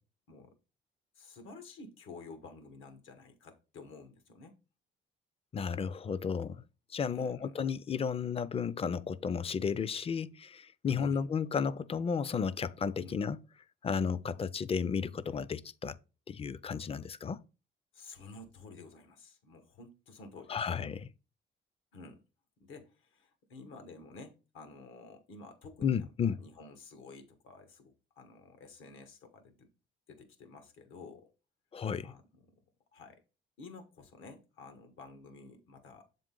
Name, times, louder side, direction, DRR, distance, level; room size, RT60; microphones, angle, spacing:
voice 1, 1.2-4.6 7.1-7.6 10.9-11.3 13.0-13.2 17.9-20.7 21.9-22.2 22.6-29.7 30.1-31.3 32.0-32.5 32.9-33.2 33.6-36.1, left 3 dB, 85° left, 1.3 m, -51 dB
voice 2, 5.5-6.6 6.9-13.4 13.8-16.0 16.3-17.4 20.5-21.1 25.8-26.4 31.7-32.1, left 6 dB, 30° left, 0.4 m, -33 dB
7.4 x 3.8 x 3.8 m
cardioid pair, 90°, 20 cm